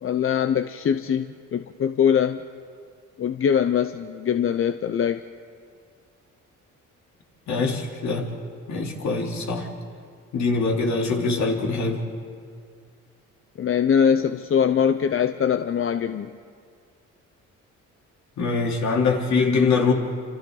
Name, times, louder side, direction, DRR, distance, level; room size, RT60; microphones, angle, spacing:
voice 1, 0.0-2.4 3.2-5.2 13.6-16.3, left 8 dB, 45° left, 10 dB, 0.7 m, -22 dB
voice 2, 7.5-8.3 8.7-9.7 10.3-12.0 18.4-19.9, left 4 dB, 65° left, 0 dB, 3.3 m, -23 dB
28.0 x 27.0 x 3.9 m, 2.2 s
cardioid pair, 90°, 30 cm